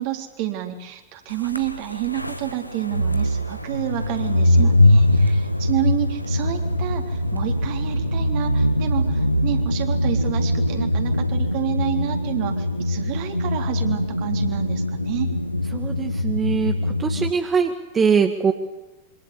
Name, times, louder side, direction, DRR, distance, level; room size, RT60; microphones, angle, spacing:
voice 1, 0.0-15.4, right 15 dB, 45° right, 5 dB, 3.9 m, -29 dB
sound 1, 1.4-17.3, left 1 dB, 90° left, 1.4 m, -22 dB
voice 2, 15.7-16.7 17.0-18.5, right 6 dB, 20° right, 6 dB, 1.9 m, -22 dB
27.0 x 25.0 x 8.5 m, 1.0 s
figure-of-eight pair, 90°, 0 cm